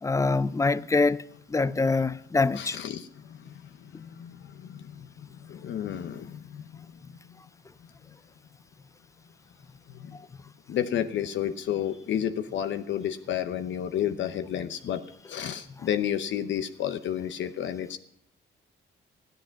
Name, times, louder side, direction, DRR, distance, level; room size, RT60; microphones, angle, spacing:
voice 1, 0.0-2.8, left 3 dB, 15° left, 0.4 m, -25 dB
voice 2, 2.5-7.2 9.9-10.2 10.7-18.0, left 10 dB, 70° left, 0.8 m, -32 dB
14.0 x 10.5 x 5.7 m
cardioid pair, 90°, 20 cm